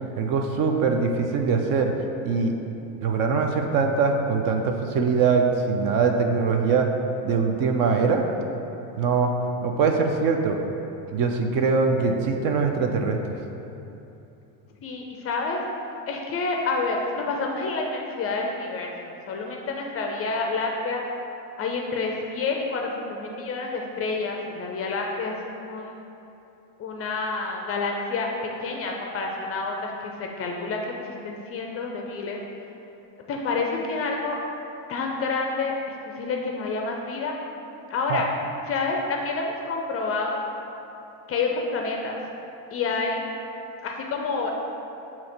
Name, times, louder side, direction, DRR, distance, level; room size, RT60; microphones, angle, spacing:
voice 1, 0.2-1.9 2.2-2.5 3.0-6.9 7.2-8.3 8.9-9.3 9.6-10.6 11.1-13.2 38.1-38.2, right 5 dB, 45° right, 4 dB, 0.5 m, -22 dB
voice 2, 14.8-15.6 16.1-21.0 21.6-25.4 25.6-26.0 26.8-28.3 28.6-32.4 33.3-34.4 34.9-37.3 37.9-38.3 38.7-40.4 41.3-42.2 42.7-43.2 43.8-44.6, left 3 dB, 30° left, 1 dB, 0.4 m, -28 dB
7.7 x 2.9 x 4.3 m, 2.9 s
supercardioid pair, 125°, 49 cm